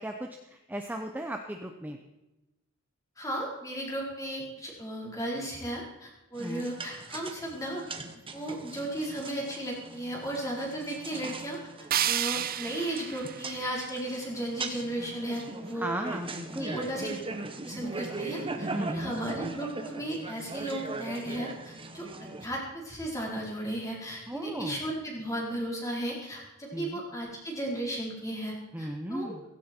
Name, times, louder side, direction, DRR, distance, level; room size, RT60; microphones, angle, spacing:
voice 1, 0.0-2.0 6.4-6.7 15.7-16.8 18.7-19.1 24.3-24.8 26.7-27.0 28.7-29.4, right 1 dB, 10° right, 4 dB, 0.8 m, -36 dB
voice 2, 3.2-7.8 8.3-11.6 12.0-15.9 16.6-17.1 17.6-29.3, right 1 dB, 15° left, -2 dB, 4.3 m, -35 dB
sound 1, 6.4-22.5, right 3 dB, 25° right, 1.2 m, -40 dB
sound 2, 11.9-14.9, right 11 dB, 40° right, 0.6 m, -32 dB
16.5 x 16.0 x 4.5 m, 1.0 s
head